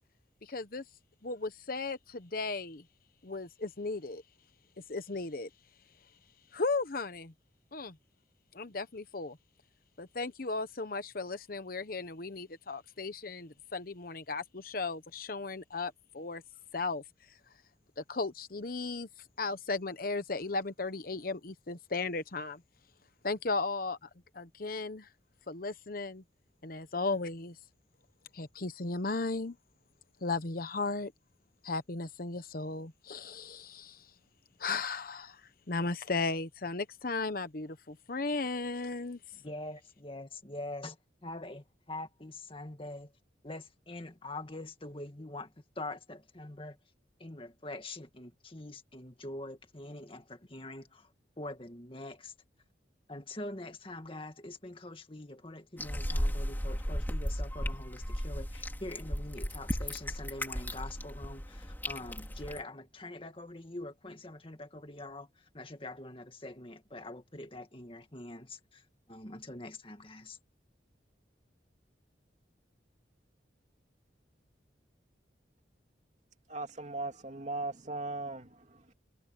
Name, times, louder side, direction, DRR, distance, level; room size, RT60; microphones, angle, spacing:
voice 1, 0.4-0.8 1.2-2.8 3.2-4.2 4.9-5.5 6.5-7.3 7.7-8.0 8.5-9.4 10.0-16.4 16.7-17.0 18.0-19.1 19.4-22.6 23.2-24.1 24.3-25.1 25.5-26.2 26.6-27.6 28.3-29.6 30.2-31.1 31.6-34.1 34.6-35.4 35.7-39.2, left 3 dB, 50° left, 1.0 m, -35 dB
voice 2, 39.4-41.0 41.2-43.1 43.4-46.8 47.2-51.1 51.4-52.3 53.1-65.3 65.5-68.8 69.1-70.4, left 2 dB, 30° left, 2.1 m, -44 dB
sound 1, 55.8-62.6, equal, 10° left, 3.0 m, -35 dB
voice 3, 76.5-78.9, right 2 dB, 40° right, 2.7 m, -38 dB
head